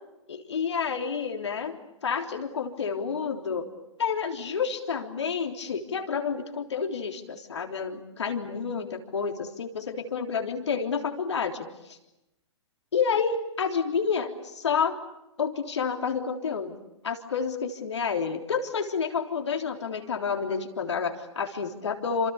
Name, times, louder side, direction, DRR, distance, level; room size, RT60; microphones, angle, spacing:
voice 1, 0.3-3.7 4.0-12.0 12.9-15.0 15.4-16.7 17.0-22.3, left 6 dB, 65° left, 5 dB, 3.5 m, -29 dB
29.0 x 26.5 x 6.8 m, 0.90 s
figure-of-eight pair, 115°, 16 cm